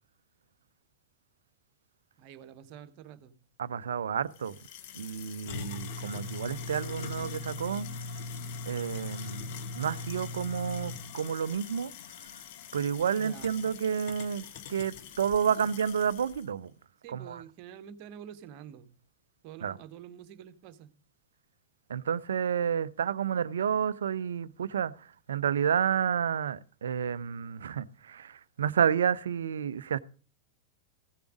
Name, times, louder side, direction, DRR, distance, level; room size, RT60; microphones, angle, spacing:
voice 1, 2.2-3.4 13.2-13.7 15.5-15.6 17.0-18.9 19.4-20.9, right 9 dB, 45° right, 1.0 m, -47 dB
voice 2, 3.6-4.6 4.9-7.9 8.7-11.9 12.7-16.7 17.1-17.4 19.6-19.8 21.9-30.0, right 7 dB, 65° right, 0.5 m, -30 dB
sound 1, 4.4-16.4, left 4 dB, 50° left, 1.0 m, -41 dB
15.5 x 6.9 x 5.0 m
figure-of-eight pair, 90°, 0 cm